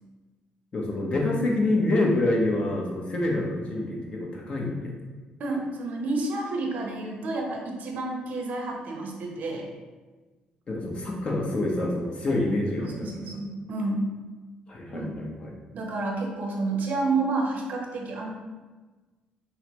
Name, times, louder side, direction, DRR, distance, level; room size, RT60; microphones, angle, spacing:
voice 1, 0.7-4.9 10.7-13.3 14.7-15.5, left 2 dB, 40° left, -1 dB, 0.9 m, -27 dB
voice 2, 5.4-9.7 12.8-14.1 14.9-15.1 15.7-18.3, right 3 dB, 65° right, 1 dB, 0.7 m, -30 dB
5.4 x 2.1 x 3.0 m, 1.3 s
cardioid pair, 85°, 3 cm